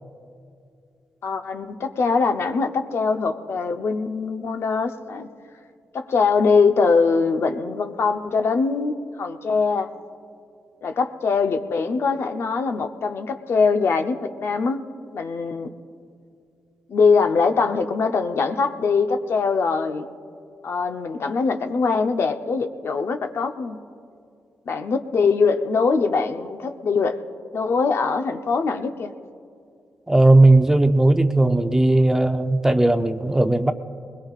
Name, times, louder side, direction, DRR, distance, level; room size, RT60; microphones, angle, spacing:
voice 1, 1.2-5.3 5.9-8.9 9.2-9.9 10.8-14.8 15.1-15.7 16.9-20.1 20.6-23.8 24.7-27.2 27.5-29.1, left 4 dB, 55° left, 6 dB, 0.8 m, -22 dB
voice 2, 30.1-33.7, right 2 dB, 10° right, 7 dB, 0.6 m, -17 dB
22.0 x 21.0 x 2.5 m, 2.4 s
cardioid pair, 105°, 5 cm